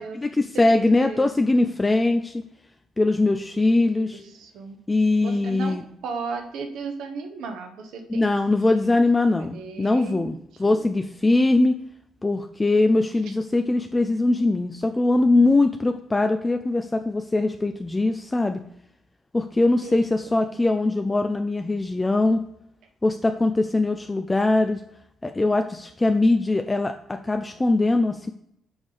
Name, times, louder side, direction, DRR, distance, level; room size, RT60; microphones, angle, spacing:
voice 1, 0.1-2.4 3.0-4.2 4.9-5.8 8.1-11.8 12.2-18.6 19.3-22.4 23.0-24.8 25.2-28.3, left 2 dB, 20° left, 6 dB, 0.4 m, -21 dB
voice 2, 4.1-4.8 5.2-8.3 8.7-8.9 9.4-10.3 10.7-10.8 19.8-20.6, right 5 dB, 80° right, 6 dB, 1.0 m, -36 dB
6.2 x 3.6 x 4.9 m, 0.77 s
cardioid pair, 90°, 0 cm